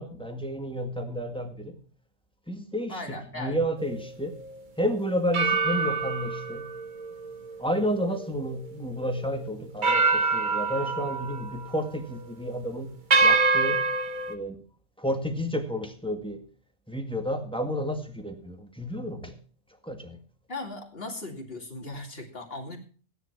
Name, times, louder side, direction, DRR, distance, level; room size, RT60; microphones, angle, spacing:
voice 1, 0.0-1.8 2.5-4.3 4.8-6.7 7.6-12.9 13.2-13.8 14.3-14.6 15.0-16.4 16.9-19.3 19.8-20.2, equal, 5° left, 5 dB, 1.7 m, -31 dB
voice 2, 2.9-3.6 20.5-22.8, left 2 dB, 50° left, 2 dB, 2.8 m, -37 dB
sound 1, 3.8-4.0 5.3-8.8 9.2-9.3 9.8-11.7 12.0-12.3 13.1-14.3, right 4 dB, 40° right, 1.2 m, -26 dB
16.5 x 10.5 x 4.5 m, 0.41 s
omnidirectional pair, 1.3 m